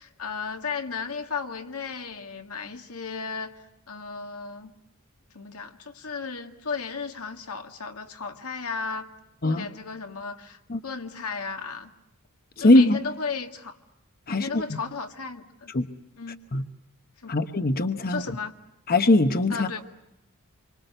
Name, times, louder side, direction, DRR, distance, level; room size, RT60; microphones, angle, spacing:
voice 1, 0.0-4.7 5.3-9.1 9.4-11.9 12.6-13.8 14.3-15.7 16.2-16.4 17.2-17.3 18.0-18.5 19.5-19.8, left 5 dB, 85° left, 5 dB, 2.1 m, -35 dB
voice 2, 12.6-13.0 14.3-14.5 15.7-15.9 16.5-16.6 17.3-18.2 18.9-19.7, left 2 dB, 45° left, 9 dB, 1.0 m, -20 dB
26.5 x 24.5 x 7.9 m, 0.89 s
head